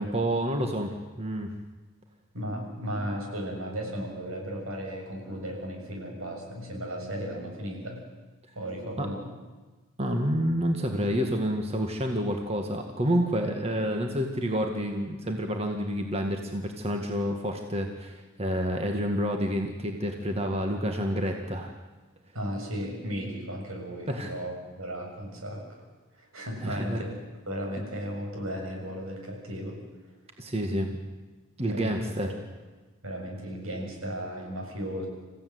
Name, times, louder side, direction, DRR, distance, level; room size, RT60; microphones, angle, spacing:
voice 1, 0.0-1.5 9.0-9.1 10.0-21.7 24.1-24.3 26.6-27.0 30.4-31.0 31.6-32.3, equal, 30° right, 3 dB, 1.8 m, -29 dB
voice 2, 2.3-8.0 8.6-9.3 22.3-25.8 26.1-27.1 27.5-29.8 31.7-32.3 33.0-35.1, equal, 80° right, 1 dB, 7.1 m, -35 dB
27.5 x 15.5 x 9.5 m, 1.3 s
head